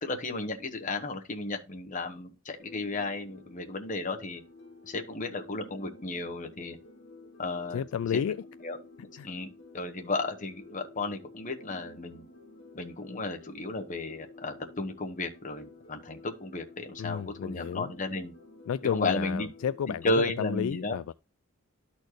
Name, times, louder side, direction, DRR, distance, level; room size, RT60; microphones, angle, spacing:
voice 1, 0.0-4.4 4.8-6.8 7.4-7.8 8.1-8.2 8.6-8.8 9.2-12.3 12.7-18.3 18.9-19.5 20.0-21.0, left 2 dB, 35° left, 1.1 m, -33 dB
sound 1, 2.6-20.4, left 2 dB, 55° left, 1.9 m, -51 dB
voice 2, 7.7-8.4 9.2-9.3 17.0-17.9 18.7-21.1, left 8 dB, 75° left, 0.3 m, -31 dB
12.5 x 4.2 x 3.2 m
head